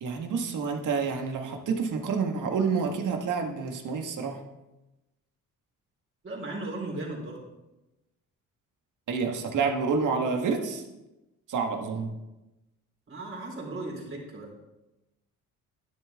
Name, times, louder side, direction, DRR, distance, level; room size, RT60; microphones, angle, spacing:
voice 1, 0.0-4.4 9.1-10.8 11.5-12.1, right 5 dB, 70° right, 4 dB, 1.7 m, -28 dB
voice 2, 6.2-7.4 13.1-14.5, right 2 dB, 40° right, -2 dB, 4.4 m, -36 dB
11.5 x 10.5 x 3.6 m, 1.0 s
cardioid pair, 95°, 32 cm